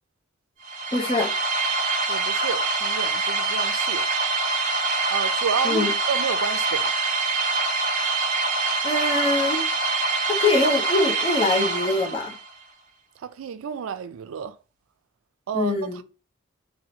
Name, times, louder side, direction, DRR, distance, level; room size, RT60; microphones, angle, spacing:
sound 1, 0.6-12.5, right 3 dB, 40° right, 0.5 m, -25 dB
voice 1, 0.9-1.3 5.6-5.9 8.8-9.6 10.3-12.4 15.5-16.0, left 2 dB, 25° left, 0.7 m, -23 dB
voice 2, 2.1-4.1 5.1-7.0 13.2-14.6 15.5-16.0, right 6 dB, 90° right, 0.3 m, -30 dB
2.8 x 2.1 x 4.0 m
head